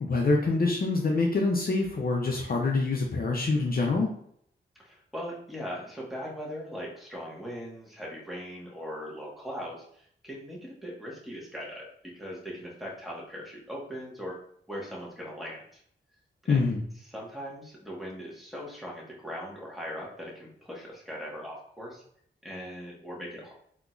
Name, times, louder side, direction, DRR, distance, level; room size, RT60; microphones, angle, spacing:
voice 1, 0.0-4.1 16.5-16.8, left 3 dB, 50° left, 0 dB, 0.6 m, -25 dB
voice 2, 4.8-14.3 14.7-15.6 16.4-16.7 17.0-22.0 22.4-23.5, equal, ahead, -5 dB, 1.4 m, -40 dB
3.7 x 2.8 x 2.4 m, 0.66 s
cardioid pair, 60°, 20 cm